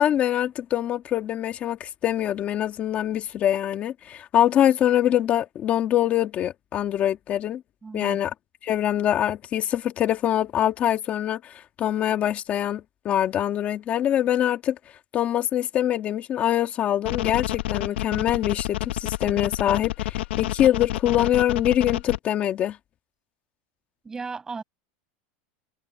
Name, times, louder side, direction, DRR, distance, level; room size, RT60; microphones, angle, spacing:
voice 1, 0.0-7.6 7.9-8.3 8.6-14.8 15.1-22.8, left 11 dB, 25° left, 1.5 m, -24 dB
voice 2, 7.8-8.2 24.0-24.6, right 4 dB, 10° right, 6.2 m, -35 dB
sound 1, 17.1-22.2, left 16 dB, 70° left, 0.9 m, -28 dB
supercardioid pair, 180°, 6 cm